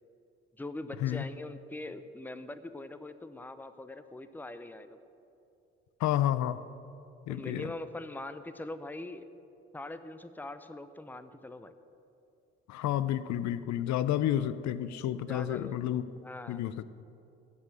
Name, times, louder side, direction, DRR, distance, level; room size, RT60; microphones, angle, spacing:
voice 1, 0.6-5.1 7.3-9.3 9.7-11.7 15.3-15.8 16.2-16.6, left 2 dB, 5° left, 12 dB, 0.7 m, -42 dB
voice 2, 6.0-6.6 7.3-7.7 12.7-16.1 16.5-16.7, left 11 dB, 55° left, 15 dB, 0.6 m, -30 dB
15.0 x 5.6 x 7.6 m, 2.7 s
hypercardioid pair, 50°, 33 cm